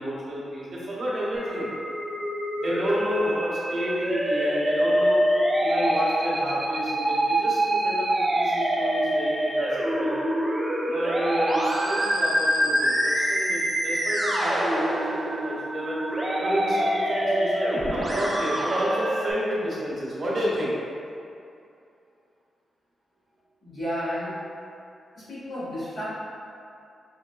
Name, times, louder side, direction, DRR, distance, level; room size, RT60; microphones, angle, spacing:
voice 1, 0.0-1.7 2.5-5.2 5.6-10.2 10.8-16.0 16.4-20.7, equal, 55° right, -7 dB, 1.0 m, -30 dB
Musical instrument, 1.3-19.3, right 1 dB, 25° right, 0.5 m, -25 dB
voice 2, 23.6-24.3 25.1-26.0, equal, 45° left, -10 dB, 1.4 m, -32 dB
4.7 x 2.1 x 2.2 m, 2.6 s
cardioid pair, 100°, 0 cm